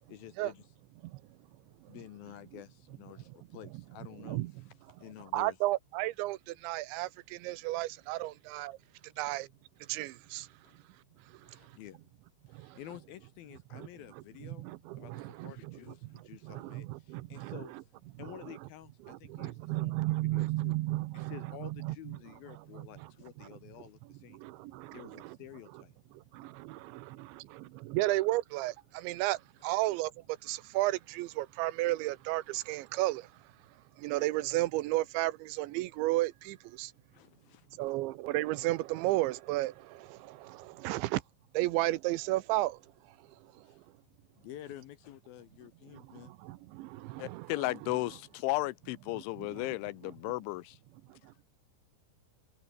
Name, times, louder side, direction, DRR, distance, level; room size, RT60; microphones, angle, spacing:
voice 1, 0.1-0.6 1.9-4.7 5.0-5.6 10.6-10.8 11.4-12.0 12.5-14.7 15.0-20.8 21.1-24.4 24.9-25.9 29.7-29.8 37.1-37.8 43.6-43.8 44.4-46.3, left 13 dB, 70° left, 2.4 m, -50 dB
voice 2, 5.3-6.4 6.6-7.1 7.4-8.7 9.2-9.5 9.9-10.4 14.4-14.8 15.1-15.5 16.6-17.6 19.4-22.2 26.7-26.8 27.9-28.7 29.0-29.4 29.6-30.1 30.5-33.2 34.0-36.9 37.8-39.7 40.8-41.2 41.6-42.7 46.8-46.9 47.1-47.5, right 18 dB, 80° right, 3.1 m, -32 dB
voice 3, 47.2-50.8, left 20 dB, 85° left, 3.2 m, -34 dB
omnidirectional pair, 5.3 m